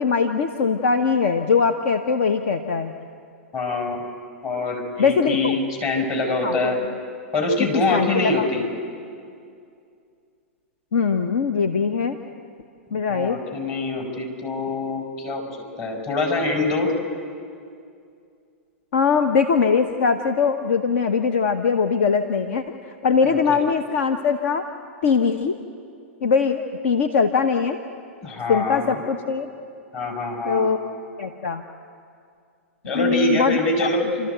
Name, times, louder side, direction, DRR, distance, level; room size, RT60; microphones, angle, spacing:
voice 1, 0.0-2.9 5.0-5.6 6.4-6.7 7.9-8.4 10.9-12.2 12.9-13.4 18.9-22.6 23.0-24.6 25.0-25.6 26.2-27.8 28.5-29.5 30.4-30.9 31.2-31.6 32.9-33.9 34.2-34.3, left 5 dB, 65° left, 7 dB, 1.0 m, -21 dB
voice 2, 3.5-4.0 4.4-6.8 7.3-8.6 12.9-15.4 15.8-16.9 23.2-23.6 28.2-29.0 29.9-30.7 32.8-34.0, left 2 dB, 35° left, 2 dB, 5.3 m, -24 dB
29.5 x 13.5 x 8.1 m, 2.4 s
hypercardioid pair, 110°, 7 cm